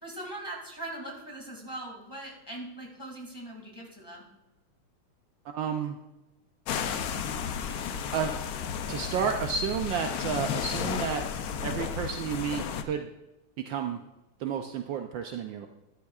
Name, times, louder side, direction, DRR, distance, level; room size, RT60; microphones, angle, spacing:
voice 1, 0.0-4.3, right 1 dB, 10° left, -2 dB, 2.0 m, -41 dB
voice 2, 5.4-6.0 8.1-8.3 8.9-11.3 11.6-13.1 13.6-14.0 14.4-15.7, right 7 dB, 70° right, 5 dB, 1.2 m, -31 dB
sound 1, 6.7-12.8, left 7 dB, 85° left, 0.8 m, -33 dB
13.0 x 11.5 x 2.4 m, 1.0 s
omnidirectional pair, 2.3 m